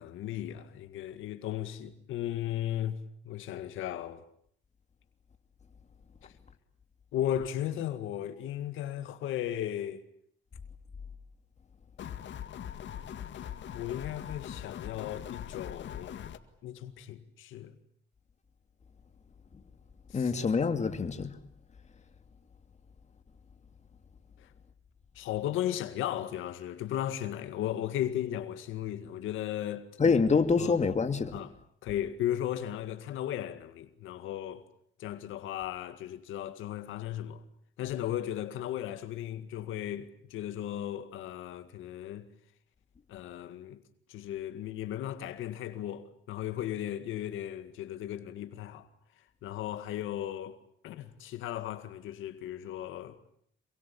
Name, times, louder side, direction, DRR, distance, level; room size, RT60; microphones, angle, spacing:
voice 1, 0.0-3.0 3.2-4.2 6.2-6.3 7.1-10.0 13.7-16.3 16.6-17.8 20.1-20.3 24.4-24.5 25.2-29.9 30.6-30.7 31.3-31.5 31.8-34.6 35.0-37.4 37.8-42.3 43.1-43.8 44.1-48.9 49.4-50.6 50.8-53.2, left 11 dB, 90° left, 2.0 m, -36 dB
sound 1, 12.0-16.4, left 9 dB, 65° left, 2.0 m, -41 dB
voice 2, 20.1-21.4 30.0-31.4, left 5 dB, 35° left, 2.5 m, -26 dB
27.5 x 23.5 x 8.6 m
cardioid pair, 90°, 20 cm